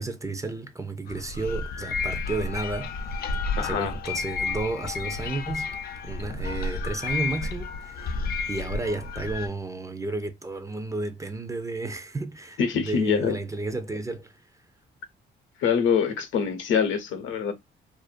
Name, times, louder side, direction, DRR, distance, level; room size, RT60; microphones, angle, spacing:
voice 1, 0.0-2.9 3.6-5.7 6.0-8.2 8.5-14.4, right 2 dB, 15° right, 0.4 m, -32 dB
sound 1, 1.1-9.5, left 4 dB, 50° left, 0.4 m, -31 dB
voice 2, 3.6-3.9 12.6-13.4 15.6-17.5, left 6 dB, 80° left, 0.7 m, -24 dB
2.4 x 2.1 x 2.4 m
cardioid pair, 90°, 20 cm